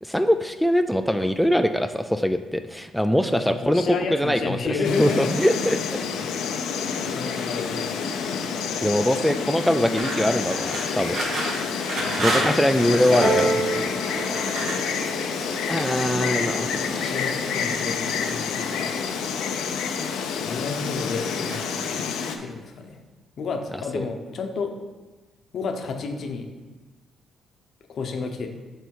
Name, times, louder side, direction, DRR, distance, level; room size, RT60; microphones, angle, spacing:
voice 1, 0.0-3.8 4.1-6.0 6.9-7.0 8.8-11.2 12.2-13.5 15.7-17.2 23.9-24.0, equal, ahead, 7 dB, 0.3 m, -23 dB
voice 2, 3.2-5.3 7.1-8.0 12.0-13.9 16.6-19.0 20.5-21.6 22.4-23.0 23.4-24.7 25.5-26.5 27.9-28.5, left 4 dB, 60° left, 5 dB, 0.9 m, -31 dB
Insect, 4.8-22.4, left 6 dB, 90° left, 0.6 m, -28 dB
sound 1, 10.0-13.4 14.1-16.2 16.7-17.3 17.7-18.6 19.5-20.2 20.5-21.1 21.5-22.3, right 1 dB, 65° right, 1.8 m, -32 dB
Piano, 13.2-18.4 19.2-19.3, right 2 dB, 90° right, 1.9 m, -31 dB
8.0 x 3.4 x 4.7 m, 1.2 s
cardioid pair, 90°, 0 cm